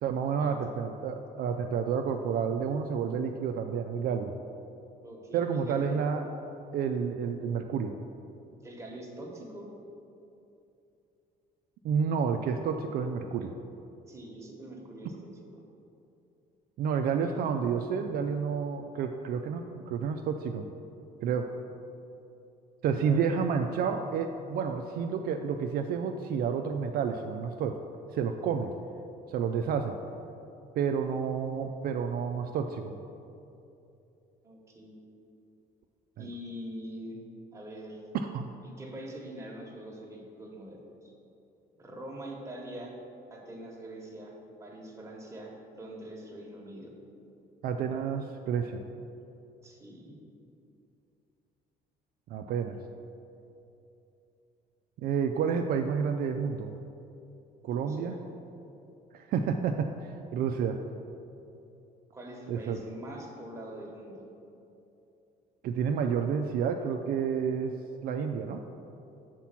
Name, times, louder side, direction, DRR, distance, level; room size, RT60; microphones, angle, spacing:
voice 1, 0.0-4.3 5.3-6.2 6.7-7.9 11.8-13.5 16.8-20.7 21.2-21.5 22.8-27.8 28.1-28.7 29.3-30.0 30.8-33.0 36.2-36.3 38.1-38.5 47.6-48.8 52.3-52.8 55.0-56.8 57.6-58.1 59.1-60.8 62.5-62.8 65.6-67.8 68.0-68.6, right 6 dB, 60° right, 5 dB, 0.4 m, -30 dB
voice 2, 5.0-6.0 8.6-9.7 14.1-15.6 17.2-17.4 23.0-23.3 34.4-34.9 36.2-37.2 37.5-38.0 38.6-41.1 41.8-42.9 43.3-44.3 44.6-46.9 49.6-50.2 57.7-58.2 62.1-64.2, right 1 dB, 15° right, -1 dB, 1.2 m, -44 dB
5.9 x 4.5 x 5.8 m, 2.8 s
cardioid pair, 110°, 17 cm